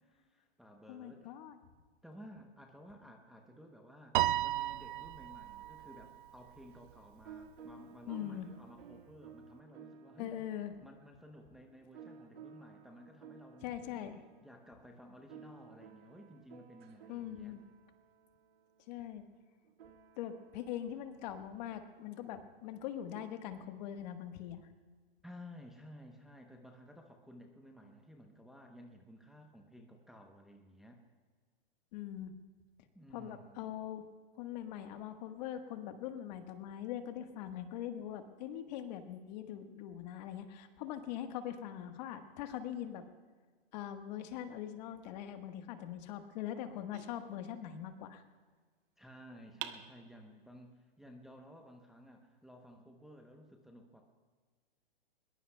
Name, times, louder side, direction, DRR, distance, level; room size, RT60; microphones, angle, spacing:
voice 1, 0.0-1.3 2.0-10.3 10.8-14.1 14.4-17.6 25.2-31.0 32.9-33.7 49.0-54.0, equal, ahead, 2 dB, 0.8 m, -55 dB
voice 2, 0.9-1.6 8.1-8.5 10.2-10.7 13.6-14.2 17.1-17.6 18.9-19.2 20.2-24.7 31.9-32.3 33.1-34.1 34.4-43.0 43.7-48.2, left 10 dB, 45° left, 7 dB, 1.4 m, -42 dB
Piano, 4.1-6.6, right 14 dB, 60° right, 0.5 m, -34 dB
sound 1, 5.5-23.3, right 6 dB, 75° right, 1.7 m, -57 dB
sound 2, 46.9-48.1 49.6-50.6, right 12 dB, 35° right, 0.9 m, -48 dB
21.5 x 21.5 x 2.3 m, 1.5 s
hypercardioid pair, 135°, 30 cm